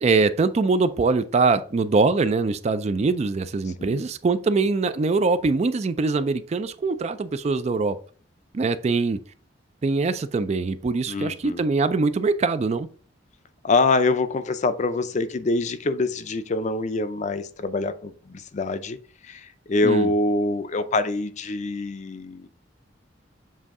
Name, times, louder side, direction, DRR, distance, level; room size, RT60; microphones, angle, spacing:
voice 1, 0.0-8.0 8.5-9.2 9.8-12.9 19.8-20.1, right 3 dB, 35° right, 0.3 m, -23 dB
voice 2, 11.1-11.6 13.6-19.0 19.2-22.5, left 3 dB, 40° left, 0.5 m, -25 dB
7.5 x 2.7 x 4.7 m
head